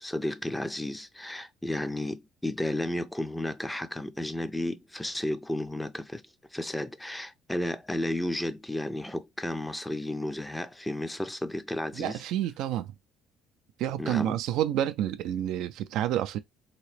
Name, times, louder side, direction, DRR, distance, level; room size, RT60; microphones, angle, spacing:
voice 1, 0.0-6.2 6.5-12.2 14.0-14.4, left 1 dB, 10° left, 0.4 m, -33 dB
voice 2, 12.0-12.9 13.8-16.4, right 11 dB, 75° right, 0.3 m, -29 dB
2.9 x 2.9 x 3.2 m
cardioid pair, 90°, 0 cm